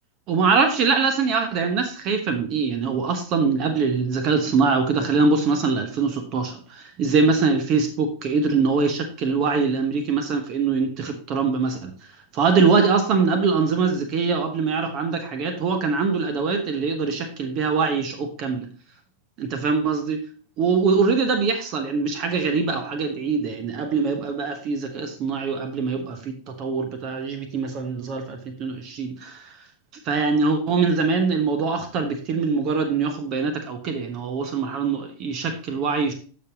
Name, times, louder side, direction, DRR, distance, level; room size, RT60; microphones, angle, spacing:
voice 1, 0.3-11.9 12.3-18.7 19.4-20.2 20.6-29.4 30.1-36.1, right 4 dB, 35° right, 7 dB, 1.1 m, -23 dB
13.5 x 5.2 x 2.9 m, 0.40 s
figure-of-eight pair, 90°, 0 cm